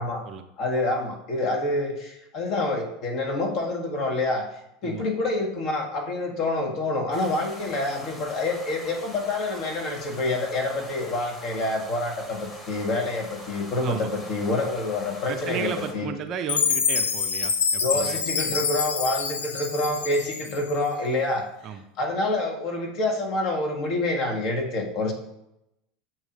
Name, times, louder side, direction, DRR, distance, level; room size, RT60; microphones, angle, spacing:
voice 1, 0.6-4.5 4.8-16.1 17.8-21.5 22.0-25.1, left 2 dB, 50° left, 2 dB, 1.4 m, -27 dB
sound 1, 7.1-15.9, left 1 dB, 20° left, 1.5 m, -43 dB
voice 2, 15.3-18.2 21.6-21.8, right 8 dB, 45° right, 7 dB, 0.6 m, -34 dB
Chime, 16.5-20.7, left 6 dB, 75° left, 0.5 m, -26 dB
7.3 x 3.1 x 5.0 m, 0.84 s
figure-of-eight pair, 75°, 0 cm